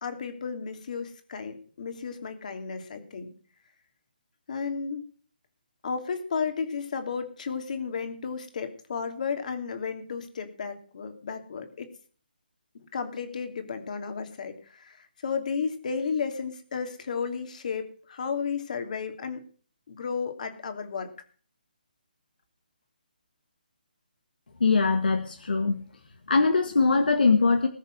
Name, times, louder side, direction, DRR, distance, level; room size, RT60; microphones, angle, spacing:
voice 1, 0.0-3.3 4.5-5.0 5.8-11.9 12.7-19.4 19.9-21.1, left 5 dB, 50° left, 7 dB, 2.9 m, -33 dB
voice 2, 24.6-25.8 26.3-27.7, left 4 dB, 70° left, 5 dB, 1.9 m, -22 dB
20.0 x 6.8 x 6.5 m, 0.43 s
figure-of-eight pair, 150°, 5 cm